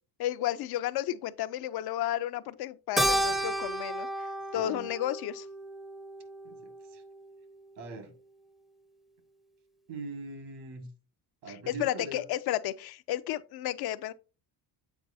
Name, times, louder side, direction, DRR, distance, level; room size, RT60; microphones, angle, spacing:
voice 1, 0.2-4.3 4.5-5.5 11.5-14.1, left 13 dB, 65° left, 0.5 m, -32 dB
Keyboard (musical), 3.0-7.6, right 1 dB, ahead, 0.5 m, -33 dB
voice 2, 4.6-4.9 6.4-7.0 7.8-8.2 9.9-10.9 11.4-12.3, right 3 dB, 75° right, 1.8 m, -42 dB
8.0 x 4.6 x 2.7 m
cardioid pair, 120°, 42 cm